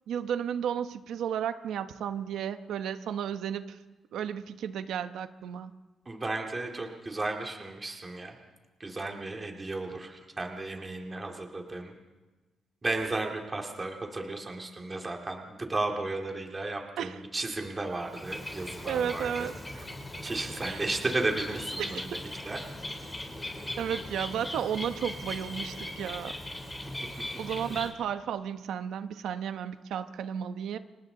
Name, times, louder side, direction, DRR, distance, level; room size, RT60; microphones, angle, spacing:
voice 1, 0.1-3.8 4.1-5.7 17.0-17.2 18.9-19.9 20.7-20.8 21.8-22.0 23.8-26.4 27.4-30.8, right 8 dB, 90° right, 9 dB, 0.9 m, -33 dB
voice 2, 6.1-8.3 8.8-11.9 12.8-19.5 20.2-22.6, right 2 dB, 20° right, 1 dB, 2.2 m, -34 dB
Bird, 17.9-27.9, left 1 dB, 15° left, 3.4 m, -39 dB
30.0 x 25.5 x 3.9 m, 1.2 s
wide cardioid pair, 175°, 0 cm